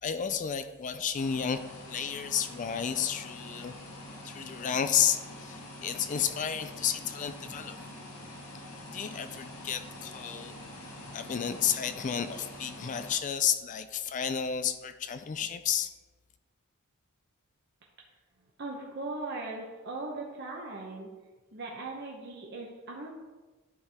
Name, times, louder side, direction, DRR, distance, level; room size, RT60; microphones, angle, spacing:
voice 1, 0.0-1.6 1.9-3.7 4.2-7.9 8.9-10.6 11.1-15.9, left 8 dB, 35° left, 10 dB, 0.4 m, -31 dB
sound 1, 1.1-13.2, left 1 dB, 80° left, 1.4 m, -45 dB
voice 2, 18.6-21.1 21.5-23.1, right 2 dB, 50° right, -1 dB, 0.9 m, -39 dB
11.5 x 4.7 x 3.5 m, 1.2 s
head